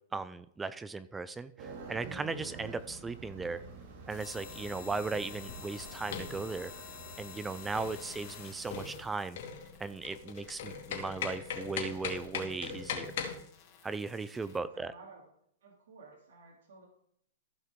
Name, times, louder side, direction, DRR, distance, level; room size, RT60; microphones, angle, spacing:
voice 1, 0.1-3.6 4.1-6.7 7.2-9.4 9.8-13.1 13.8-14.9, right 4 dB, 10° right, 15 dB, 0.3 m, -37 dB
sound 1, 1.6-9.0, right 4 dB, 50° right, 2.1 m, -48 dB
sound 2, 4.1-14.6, left 8 dB, 40° left, 2.1 m, -51 dB
sound 3, 5.3-13.4, left 7 dB, 65° left, 2.2 m, -40 dB
voice 2, 14.3-15.3 15.6-16.9, right 3 dB, 75° right, -4 dB, 2.6 m, -54 dB
15.0 x 5.6 x 3.6 m, 0.71 s
hypercardioid pair, 150°, 0 cm